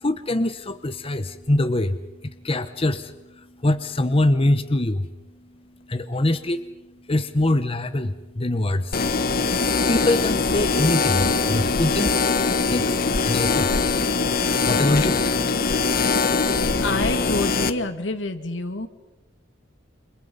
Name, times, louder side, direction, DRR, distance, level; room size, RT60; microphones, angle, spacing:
voice 1, 0.0-2.0 2.2-3.1 3.6-5.1 5.9-6.7 7.1-9.0 9.9-12.2 12.7-13.8 14.7-15.2, left 1 dB, 30° left, 9 dB, 1.0 m, -23 dB
sound 1, 8.9-17.7, left 4 dB, 50° left, 1.4 m, -22 dB
voice 2, 16.8-18.9, left 2 dB, 75° left, 7 dB, 2.5 m, -27 dB
29.5 x 27.5 x 5.6 m, 1.0 s
head